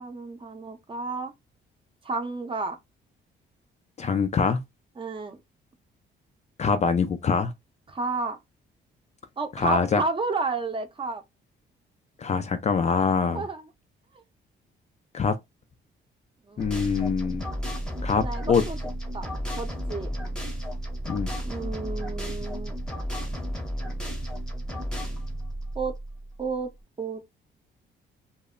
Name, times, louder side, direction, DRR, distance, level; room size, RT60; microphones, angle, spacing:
voice 1, 0.0-1.3 2.0-2.8 5.0-5.4 7.9-8.4 9.4-11.2 13.3-13.7 14.1-14.2 16.5-16.7 18.1-18.8 19.1-19.3 19.6-20.1 21.4-22.8 25.7-26.0 26.4-26.7 27.0-27.2, right 3 dB, 25° right, 0.6 m, -31 dB
voice 2, 4.0-4.6 6.6-7.5 9.6-10.0 12.2-13.4 15.1-15.4 16.6-17.5 18.0-18.6 21.1-21.3, left 5 dB, 35° left, 0.4 m, -24 dB
sound 1, 16.6-26.5, equal, 5° left, 0.8 m, -33 dB
2.0 x 2.0 x 3.5 m
cardioid pair, 90°, 20 cm